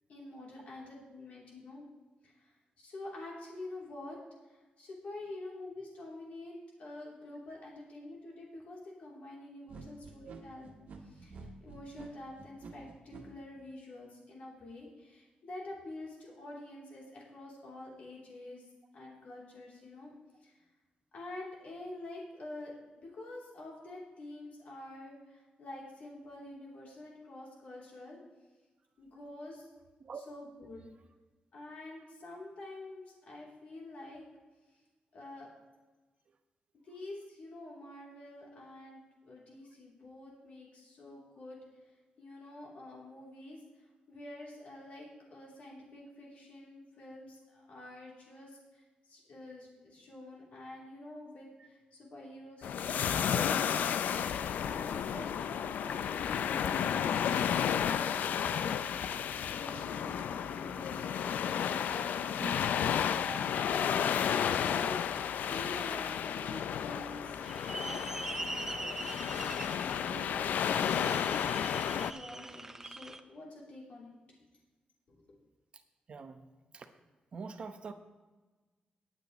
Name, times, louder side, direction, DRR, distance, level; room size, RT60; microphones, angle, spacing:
voice 1, 0.1-1.9 2.2-2.5 2.8-4.2 4.8-10.7 11.0-18.6 18.9-20.1 20.4-20.5 21.1-28.2 29.0-29.7 30.3-30.8 31.5-34.2 35.1-35.5 36.8-41.6 42.2-43.6 44.1-53.9 54.6-58.9 59.5-62.2 63.1-64.2 64.6-64.9 65.4-68.0 68.4-70.5 70.8-71.2 71.9-74.1 75.1-75.2, left 2 dB, 55° left, -3 dB, 3.2 m, -47 dB
sound 1, 9.7-13.2, right 4 dB, 65° right, 1.8 m, -49 dB
sound 2, 52.6-72.1, left 8 dB, 80° left, 0.4 m, -32 dB
sound 3, 67.4-73.2, right 2 dB, 15° right, 0.5 m, -43 dB
voice 2, 76.1-76.4 76.7-76.9 77.3-77.9, right 5 dB, 40° right, 7 dB, 0.9 m, -44 dB
18.0 x 8.9 x 3.1 m, 1.2 s
wide cardioid pair, 170°, 3 cm